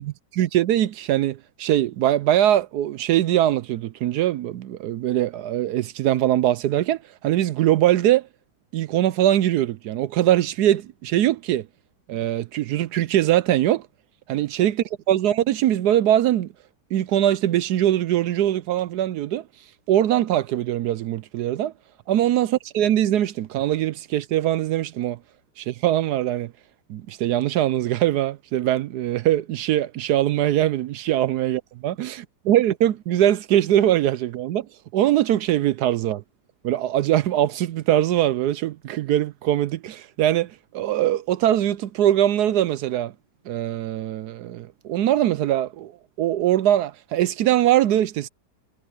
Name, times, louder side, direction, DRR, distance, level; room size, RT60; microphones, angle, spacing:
voice 1, 0.0-8.3 8.7-11.7 12.1-13.9 14.3-16.5 16.9-19.4 19.9-21.7 22.1-25.2 25.6-26.5 26.9-34.7 34.9-36.2 36.6-43.1 43.5-45.9 46.2-48.3, right 12 dB, 70° right, 1.1 m, -22 dB
omnidirectional pair, 2.0 m